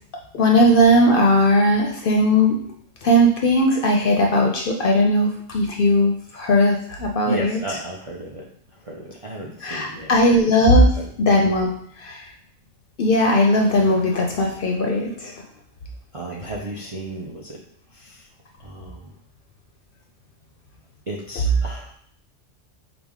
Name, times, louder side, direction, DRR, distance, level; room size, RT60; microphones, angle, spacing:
voice 1, 0.3-2.5 3.0-7.6 9.6-10.8 11.2-11.7 12.0-12.2 13.0-15.3, equal, 60° left, 0 dB, 0.6 m, -18 dB
voice 2, 7.2-10.3 10.8-11.1 16.1-17.6 17.9-18.3 18.6-19.1 21.1-21.9, right 1 dB, 50° right, -3 dB, 0.3 m, -34 dB
4.9 x 2.0 x 3.5 m, 0.63 s
omnidirectional pair, 1.3 m